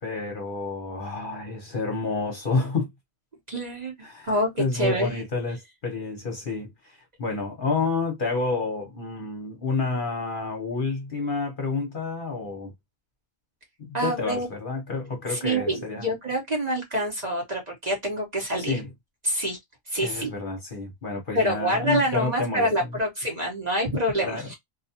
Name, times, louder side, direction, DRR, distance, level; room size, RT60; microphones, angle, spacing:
voice 1, 0.0-2.9 4.0-12.7 13.8-16.1 18.6-18.9 20.0-22.9 24.2-24.5, left 3 dB, 45° left, 0.8 m, -29 dB
voice 2, 3.5-5.2 13.9-14.5 15.3-18.8 19.2-19.6 19.9-20.3 21.3-24.6, equal, 35° right, 0.9 m, -26 dB
2.4 x 2.3 x 2.7 m
omnidirectional pair, 1.4 m